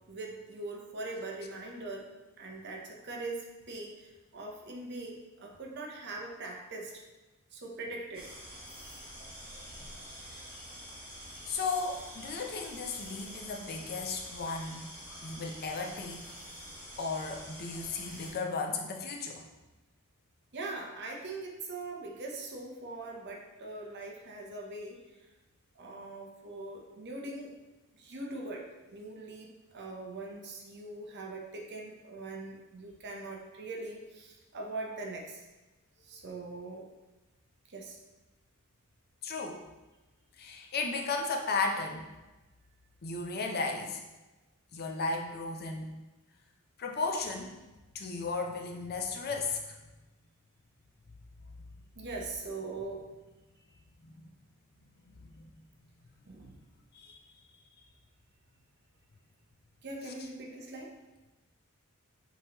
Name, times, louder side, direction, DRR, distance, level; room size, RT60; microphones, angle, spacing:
voice 1, 0.1-2.1 2.4-7.0 7.5-8.3 18.0-18.3 20.5-25.0 25.8-27.5 27.9-35.5 36.0-36.9 37.7-38.0 52.0-53.1 56.3-56.6 59.8-60.9, right 2 dB, 50° right, 0 dB, 0.7 m, -42 dB
sound 1, 8.1-18.3, equal, 25° right, 1.0 m, -47 dB
voice 2, 11.5-14.9 15.2-16.3 17.0-19.4 39.2-39.6 40.4-42.0 43.0-44.0 44.7-46.0 46.8-47.5 47.9-49.8 54.0-54.1 55.1-55.5 56.9-57.2, left 4 dB, 45° left, 2 dB, 0.5 m, -35 dB
5.4 x 3.0 x 2.9 m, 1.1 s
head